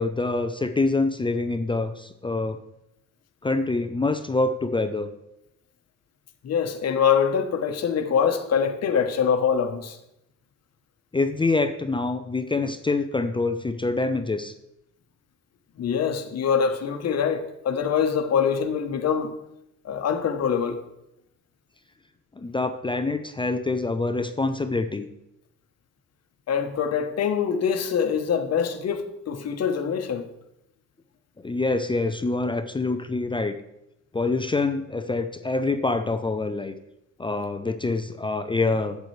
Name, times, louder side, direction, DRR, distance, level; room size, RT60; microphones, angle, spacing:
voice 1, 0.0-2.6 3.4-5.1 11.1-14.5 22.4-25.1 31.4-33.6 34.1-36.8 37.2-39.0, left 3 dB, 15° left, 0.5 m, -25 dB
voice 2, 6.4-10.0 15.8-19.3 19.8-20.8 26.5-30.3, left 7 dB, 55° left, 1.0 m, -24 dB
11.0 x 8.2 x 3.2 m
cardioid pair, 90°, 30 cm